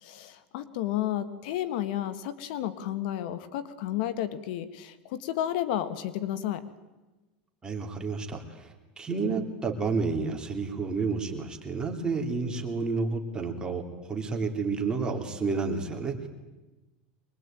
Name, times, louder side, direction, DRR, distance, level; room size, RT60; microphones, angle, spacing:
voice 1, 0.0-6.6, left 12 dB, 65° left, 13 dB, 1.6 m, -32 dB
voice 2, 7.6-16.3, right 4 dB, 15° right, 3 dB, 3.3 m, -30 dB
24.0 x 21.5 x 9.1 m, 1.1 s
supercardioid pair, 135°, 5 cm